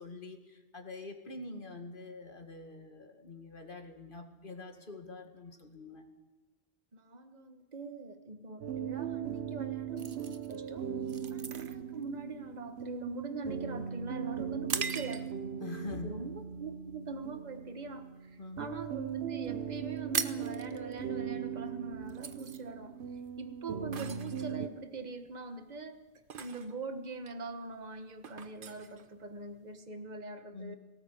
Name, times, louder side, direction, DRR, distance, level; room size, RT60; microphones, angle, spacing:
voice 1, 0.0-6.1 15.6-16.1 18.4-18.6 30.5-30.8, left 3 dB, 55° left, 5 dB, 2.3 m, -45 dB
voice 2, 6.9-10.9 11.3-15.4 16.0-26.0 26.4-30.8, right 3 dB, 45° right, 8 dB, 1.5 m, -43 dB
sound 1, 8.6-24.7, right 8 dB, 85° right, 1.2 m, -39 dB
sound 2, 10.0-15.6 16.1-16.3 16.8-17.2 17.5-18.7 19.0-19.1 19.3-19.4 19.7-29.7, right 6 dB, 60° right, 1.1 m, -41 dB
18.0 x 18.0 x 8.5 m, 1.2 s
omnidirectional pair, 1.0 m